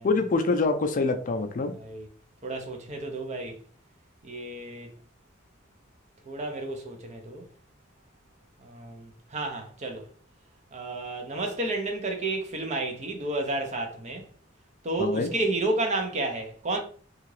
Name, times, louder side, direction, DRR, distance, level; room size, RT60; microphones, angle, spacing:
voice 1, 0.0-1.7 15.0-15.3, left 3 dB, 40° left, 0.4 m, -25 dB
voice 2, 1.8-2.1 2.4-3.6 4.2-4.9 6.3-7.5 8.6-10.0 10.7-14.3 14.8-16.8, right 2 dB, 35° right, 0.6 m, -31 dB
2.8 x 2.4 x 3.1 m
head